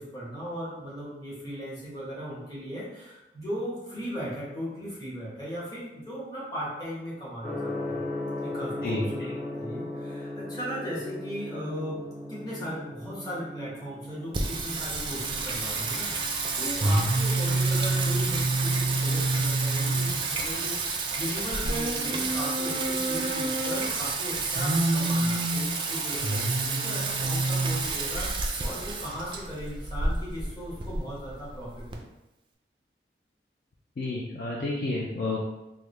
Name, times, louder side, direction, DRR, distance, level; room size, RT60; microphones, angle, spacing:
voice 1, 0.0-8.1 8.4-12.0 12.3-32.0, equal, 20° left, -8 dB, 1.2 m, -37 dB
Gong, 7.4-25.3, left 1 dB, ahead, 0.7 m, -40 dB
Singing, 14.3-31.9, right 3 dB, 30° right, 0.3 m, -28 dB
voice 2, 34.0-35.5, left 2 dB, 55° left, -3 dB, 0.4 m, -30 dB
3.5 x 2.2 x 3.1 m, 0.96 s
head